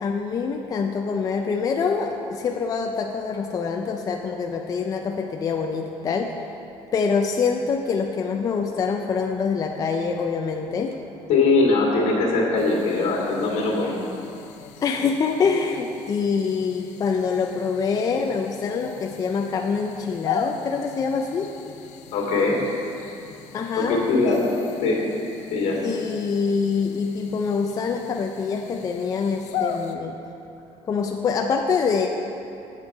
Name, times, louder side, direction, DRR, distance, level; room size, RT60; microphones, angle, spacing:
voice 1, 0.0-6.4 6.9-10.9 14.8-21.5 23.5-24.0 24.3-24.4 25.7-30.2 30.9-32.1, left 5 dB, 30° left, 2 dB, 0.4 m, -25 dB
voice 2, 11.3-14.0 22.1-22.6 23.8-24.4 24.8-25.0 25.5-25.8, left 3 dB, 75° left, -2 dB, 2.0 m, -21 dB
sound 1, 12.6-30.0, left 7 dB, 90° left, 0.5 m, -38 dB
7.6 x 7.4 x 4.7 m, 2.8 s
cardioid pair, 160°, 12 cm